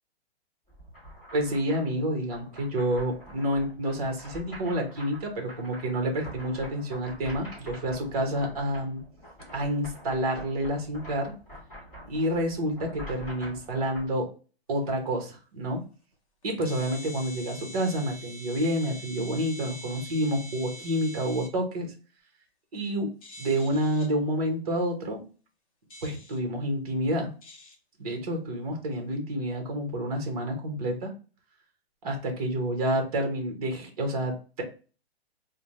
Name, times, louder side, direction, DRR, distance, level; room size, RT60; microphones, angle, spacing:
sound 1, 0.7-14.1, equal, 10° left, 1.5 m, -46 dB
voice 1, 1.3-9.0 9.5-11.3 12.0-14.3 14.7-15.8 16.4-21.9 22.7-25.2 26.0-27.3 28.0-31.1 32.0-34.6, equal, 35° right, 3 dB, 0.9 m, -29 dB
sound 2, 14.8-14.9 15.8-15.9 16.4-21.5 23.2-24.1 25.9-26.4 27.4-27.8, equal, 35° left, 0.7 m, -45 dB
3.3 x 2.2 x 4.0 m, 0.35 s
hypercardioid pair, 175°, 32 cm